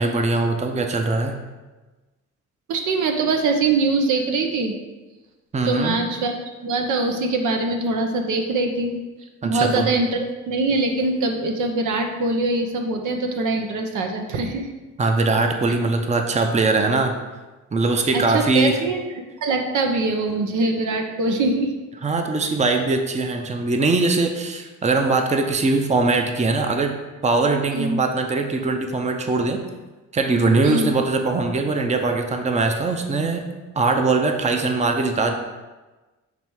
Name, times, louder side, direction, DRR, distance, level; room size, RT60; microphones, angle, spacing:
voice 1, 0.0-1.4 5.5-6.0 9.4-9.9 15.0-17.2 17.7-18.8 22.0-26.9 27.2-29.6 30.1-33.4 33.8-35.3, right 3 dB, 25° right, 4 dB, 0.7 m, -21 dB
voice 2, 2.7-4.7 5.6-6.3 6.6-9.0 9.4-14.7 18.1-19.0 19.4-21.7 27.7-28.0 30.6-30.9, right 3 dB, 80° right, 4 dB, 0.9 m, -23 dB
7.0 x 3.3 x 4.7 m, 1.2 s
cardioid pair, 90°, 30 cm